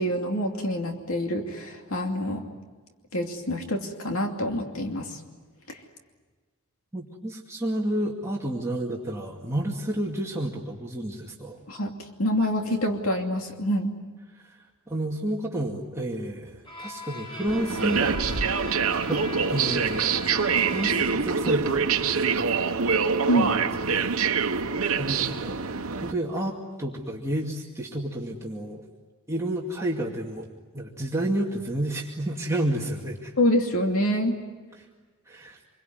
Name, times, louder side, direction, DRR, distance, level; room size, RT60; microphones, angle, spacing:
voice 1, 0.0-2.4 3.1-5.2 5.7-5.8 11.7-11.9 12.2-13.9 23.3-23.5 33.4-34.4, equal, 70° left, 3 dB, 2.7 m, -26 dB
voice 2, 6.9-11.6 14.4-14.6 14.9-18.1 19.0-19.2 19.5-20.3 20.6-23.0 23.4-23.6 23.9-24.0 25.0-25.6 25.9-28.8 29.3-30.5 30.7-33.3 35.3-35.6, right 1 dB, 15° right, -2 dB, 2.3 m, -30 dB
Bowed string instrument, 16.6-21.3, left 1 dB, 25° left, 5.2 m, -40 dB
sound 1, 17.5-26.1, right 5 dB, 70° right, 1.2 m, -25 dB
27.5 x 22.5 x 9.4 m, 1.4 s
head